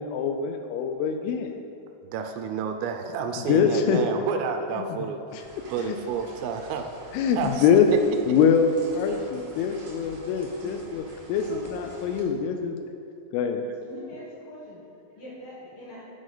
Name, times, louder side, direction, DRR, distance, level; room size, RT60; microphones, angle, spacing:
voice 1, 0.0-1.5 3.5-4.0 5.3-5.4 7.1-7.9 8.3-8.7 8.9-11.0 11.3-12.8 13.3-13.6, left 7 dB, 85° left, 6 dB, 3.0 m, -23 dB
voice 2, 2.0-5.2 5.7-6.9 7.4-8.0, right 6 dB, 85° right, 6 dB, 3.1 m, -30 dB
sound 1, 5.4-12.2, right 2 dB, 70° right, 1.3 m, -47 dB
voice 3, 11.4-11.7 13.8-14.8 15.2-16.0, left 1 dB, 65° left, -7 dB, 2.3 m, -43 dB
12.5 x 5.2 x 4.0 m, 2.5 s
omnidirectional pair, 5.8 m